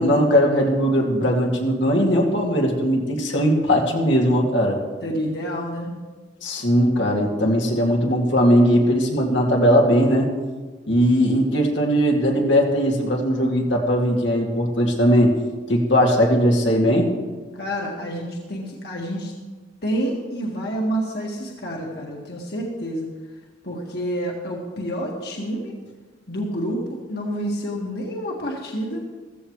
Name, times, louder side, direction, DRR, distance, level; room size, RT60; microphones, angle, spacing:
voice 1, 0.0-4.8 6.4-10.3 10.9-15.3 15.7-17.1, equal, 90° left, -1 dB, 2.3 m, -19 dB
voice 2, 5.0-5.9 17.6-19.3 19.8-23.1 23.6-25.7 26.3-29.1, equal, 60° left, -1 dB, 1.8 m, -28 dB
15.0 x 14.5 x 3.2 m, 1.3 s
head